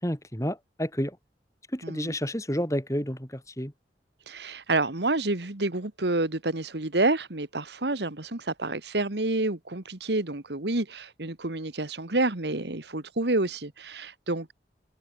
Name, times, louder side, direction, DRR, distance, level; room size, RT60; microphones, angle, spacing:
voice 1, 0.0-1.2 1.7-3.7, equal, 20° left, 6.3 m, -30 dB
voice 2, 1.8-2.1 4.3-14.5, right 2 dB, 75° right, 1.8 m, -28 dB
open air
head